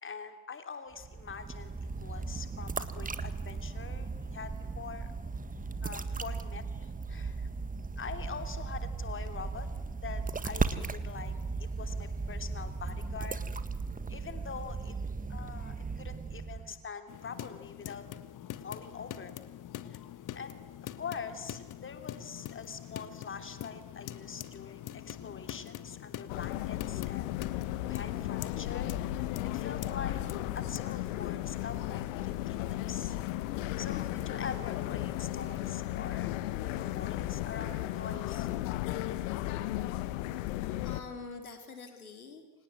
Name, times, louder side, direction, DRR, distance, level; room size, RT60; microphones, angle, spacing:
voice 1, 0.0-5.1 5.8-7.5 8.0-9.7 10.0-11.3 11.6-13.4 14.1-14.9 15.3-18.1 18.6-19.3 19.9-20.0 20.3-27.3 27.9-29.0 29.4-30.2 30.5-33.2 33.5-36.3 36.6-38.5, left 6 dB, 30° left, 8 dB, 3.1 m, -44 dB
sound 1, 0.9-16.8, right 4 dB, 20° right, 1.8 m, -37 dB
sound 2, 17.1-30.8, left 12 dB, 45° left, 1.5 m, -44 dB
sound 3, 26.3-41.0, left 15 dB, 65° left, 1.5 m, -35 dB
voice 2, 40.8-42.6, left 4 dB, 80° left, 6 dB, 2.8 m, -46 dB
29.0 x 26.0 x 7.8 m, 1.3 s
figure-of-eight pair, 55°, 42 cm